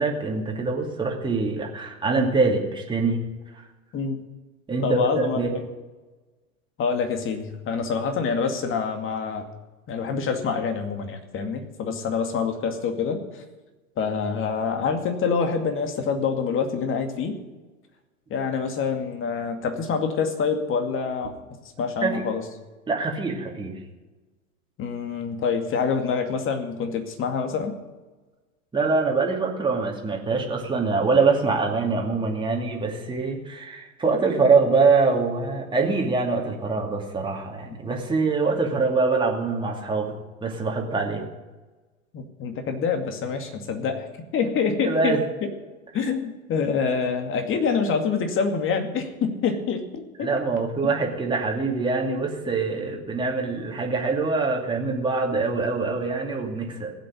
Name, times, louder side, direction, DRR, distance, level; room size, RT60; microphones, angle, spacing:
voice 1, 0.0-3.2 3.5-3.6 4.7-5.5 22.0-22.2 22.9-23.7 28.7-40.1 40.4-41.2 44.8-45.2 50.2-56.9, right 4 dB, 10° right, 0 dB, 2.5 m, -24 dB
voice 2, 4.8-5.6 6.8-9.4 9.9-13.4 14.0-17.4 18.3-21.4 21.8-22.4 24.8-27.8 37.6-37.7 42.1-45.2 45.9-50.3 50.8-50.9, left 5 dB, 30° left, 6 dB, 2.3 m, -26 dB
16.0 x 8.2 x 9.5 m, 1.2 s
figure-of-eight pair, 95°, 42 cm